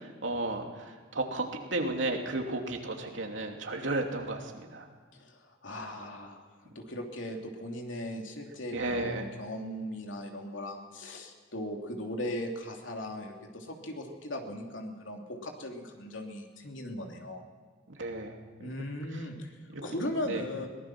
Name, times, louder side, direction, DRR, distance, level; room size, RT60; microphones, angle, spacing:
voice 1, 0.2-0.7 1.1-4.4 4.7-4.8 8.7-9.2 18.0-18.4 20.3-20.4, right 2 dB, 80° right, 2 dB, 2.9 m, -32 dB
voice 2, 5.1-17.4 18.6-20.7, left 1 dB, 85° left, 1 dB, 3.0 m, -38 dB
22.5 x 19.0 x 6.1 m, 1.5 s
head